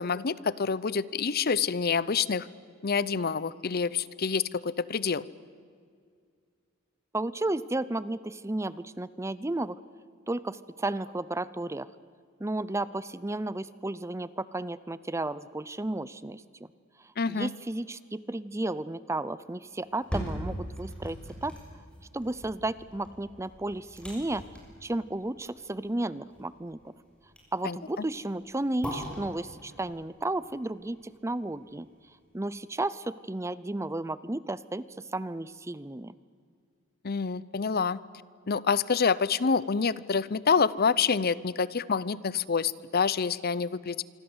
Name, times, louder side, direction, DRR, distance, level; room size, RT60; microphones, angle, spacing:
voice 1, 0.0-2.5 2.8-5.3 17.2-17.5 27.6-28.1 37.0-38.0 38.5-44.0, left 5 dB, 50° left, 19 dB, 0.7 m, -27 dB
voice 2, 7.1-9.8 10.3-11.9 12.4-16.4 17.3-21.2 21.4-21.6 22.1-24.5 24.8-26.9 27.5-31.9 32.3-36.1, right 2 dB, 15° right, 17 dB, 0.6 m, -33 dB
sound 1, 19.8-31.9 32.3-32.4, equal, 5° left, 6.4 m, -41 dB
26.5 x 24.5 x 8.0 m, 2.2 s
head